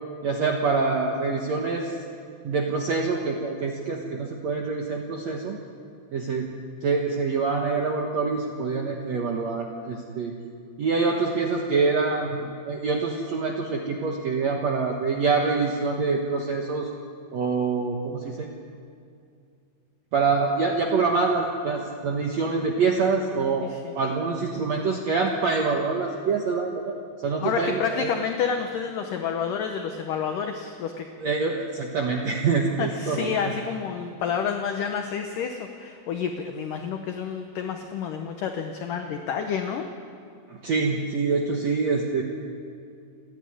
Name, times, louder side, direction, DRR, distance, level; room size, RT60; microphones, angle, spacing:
voice 1, 0.2-1.9 2.4-5.6 6.1-6.5 6.8-10.3 10.8-16.9 17.3-18.5 20.1-23.7 24.0-27.0 27.2-28.1 31.2-33.5 40.5-42.2, right 4 dB, 65° right, 1 dB, 1.8 m, -25 dB
voice 2, 23.6-23.9 27.4-31.1 32.8-39.9, left 7 dB, 70° left, 5 dB, 2.2 m, -29 dB
29.5 x 9.9 x 9.5 m, 2.3 s
omnidirectional pair, 4.7 m